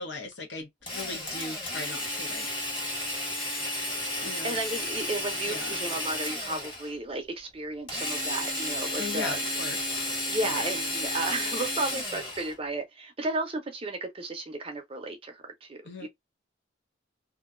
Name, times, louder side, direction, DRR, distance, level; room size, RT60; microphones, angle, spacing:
voice 1, 0.0-2.5 4.2-4.6 5.5-5.8 9.0-10.0 10.4-10.7 15.8-16.1, left 3 dB, 60° left, 0.6 m, -38 dB
Drill, 0.9-6.9 7.9-12.5, left 1 dB, 25° left, 1.0 m, -32 dB
voice 2, 4.4-9.4 10.3-16.1, right 2 dB, 30° right, 0.5 m, -33 dB
2.5 x 2.2 x 2.3 m
head